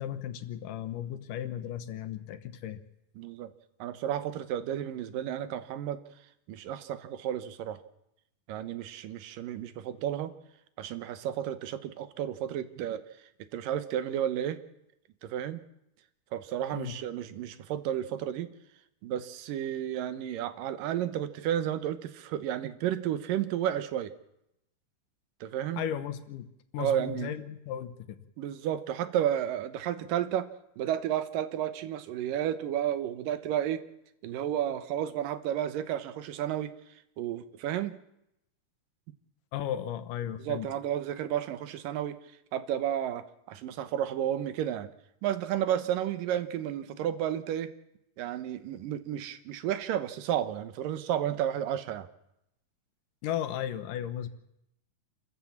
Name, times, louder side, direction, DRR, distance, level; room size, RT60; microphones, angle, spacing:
voice 1, 0.0-2.8 16.7-16.9 25.8-26.5 26.7-27.9 39.5-40.7 53.2-54.3, left 10 dB, 75° left, 10 dB, 2.7 m, -35 dB
voice 2, 3.2-3.5 3.8-6.0 6.5-7.8 8.5-10.3 10.8-13.0 13.5-14.6 15.2-15.6 16.3-18.5 19.0-24.1 25.4-25.8 26.8-27.3 28.4-30.5 30.8-33.8 34.2-36.7 37.2-38.0 40.4-42.2 42.5-44.9 45.2-47.7 48.2-52.1, right 10 dB, 80° right, 12 dB, 2.7 m, -32 dB
28.0 x 14.0 x 7.3 m, 0.83 s
omnidirectional pair, 3.9 m